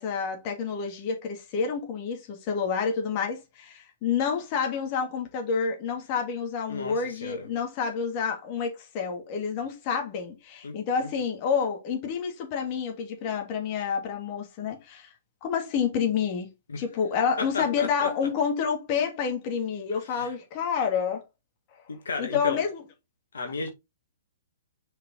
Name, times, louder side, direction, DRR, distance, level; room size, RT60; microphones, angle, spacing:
voice 1, 0.0-15.1 15.4-16.5 16.8-21.2 22.2-22.8, left 6 dB, 40° left, 2.6 m, -29 dB
voice 2, 6.7-7.5 10.6-10.7 11.0-11.1 16.7-16.8 17.4-18.1 20.1-20.3 21.9-22.6 23.3-23.7, left 3 dB, 75° left, 2.1 m, -34 dB
6.0 x 5.4 x 3.8 m
hypercardioid pair, 125°, 0 cm